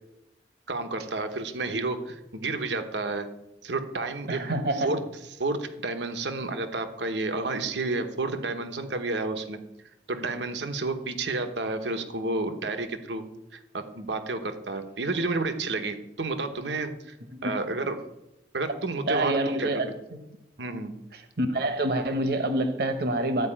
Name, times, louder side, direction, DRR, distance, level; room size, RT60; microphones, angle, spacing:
voice 1, 0.7-3.3 3.6-4.4 4.8-5.0 5.4-9.6 10.1-13.2 13.5-17.1 17.4-18.0 18.5-19.7 20.6-20.9, right 3 dB, 85° right, 7 dB, 1.1 m, -30 dB
voice 2, 4.3-4.9 17.3-17.5 19.1-20.2 21.1-23.5, right 1 dB, 60° right, 8 dB, 1.0 m, -27 dB
13.0 x 4.9 x 8.7 m, 0.91 s
head